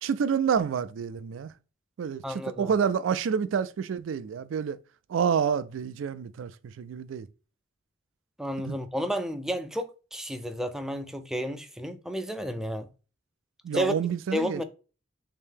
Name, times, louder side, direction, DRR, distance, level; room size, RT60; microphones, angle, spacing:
voice 1, 0.0-1.5 2.0-2.2 2.6-4.8 5.1-6.5 6.8-7.3 8.7-8.8 13.6-14.6, right 7 dB, 80° right, 0.3 m, -28 dB
voice 2, 2.2-2.7 8.4-12.9 13.7-13.9 14.3-14.6, equal, 5° right, 0.4 m, -31 dB
3.6 x 2.8 x 3.5 m
head